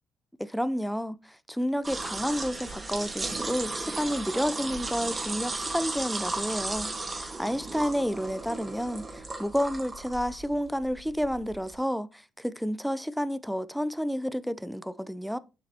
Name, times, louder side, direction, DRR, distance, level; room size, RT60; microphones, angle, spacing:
voice 1, 0.4-15.4, equal, ahead, 0.5 m, -30 dB
sound 1, 1.8-11.8, right 3 dB, 30° right, 1.8 m, -35 dB
7.6 x 5.8 x 2.8 m
supercardioid pair, 70°, 0 cm